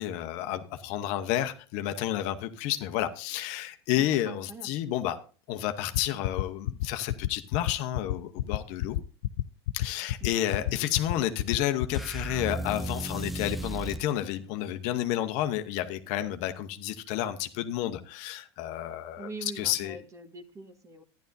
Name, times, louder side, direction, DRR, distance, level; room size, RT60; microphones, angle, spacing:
voice 1, 0.0-5.2 5.5-9.0 9.7-20.0, left 12 dB, 55° left, 8 dB, 0.9 m, -31 dB
voice 2, 4.0-4.7 10.2-10.7 19.2-21.0, right 3 dB, 20° right, 8 dB, 1.3 m, -44 dB
sound 1, 5.9-12.0, left 14 dB, 70° left, 0.4 m, -28 dB
sound 2, 11.9-14.1, right 1 dB, ahead, 0.6 m, -35 dB
12.5 x 10.5 x 2.6 m, 0.37 s
hypercardioid pair, 95°, 14 cm